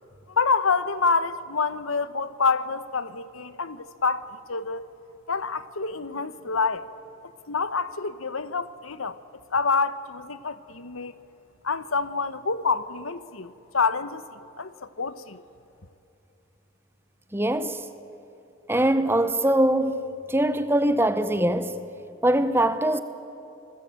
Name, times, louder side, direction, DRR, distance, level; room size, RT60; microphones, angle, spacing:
voice 1, 0.3-4.9 5.3-6.9 7.5-9.2 9.5-11.1 11.6-15.4, left 4 dB, 90° left, 1.1 m, -27 dB
voice 2, 17.3-17.9 18.7-21.8 22.2-23.0, right 1 dB, 10° right, 1.0 m, -22 dB
28.0 x 21.0 x 8.9 m
head